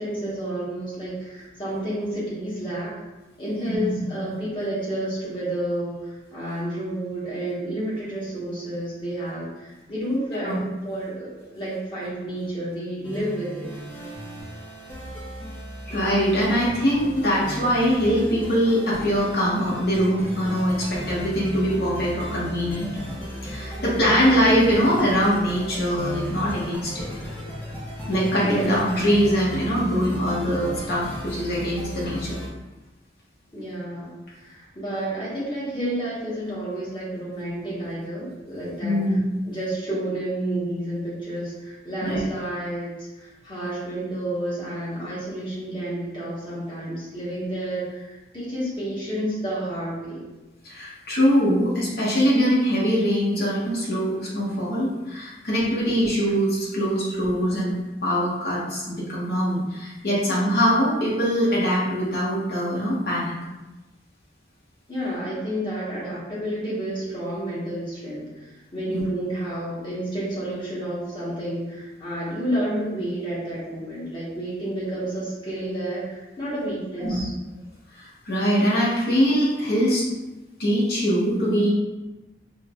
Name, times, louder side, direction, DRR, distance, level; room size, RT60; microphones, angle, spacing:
voice 1, 0.0-2.9 3.4-13.7 23.8-24.3 28.4-28.7 33.5-39.0 39.4-50.2 64.9-77.3, right 1 dB, 25° left, -8 dB, 1.1 m, -30 dB
sound 1, 13.0-32.5, equal, 10° left, 0.5 m, -35 dB
voice 2, 15.9-22.9 23.4-27.0 28.1-32.4 38.8-39.2 42.0-42.2 50.6-63.3 68.9-69.0 77.0-77.2 78.2-80.0 80.6-81.7, equal, 60° left, -6 dB, 0.9 m, -22 dB
4.3 x 2.1 x 2.3 m, 1.1 s
head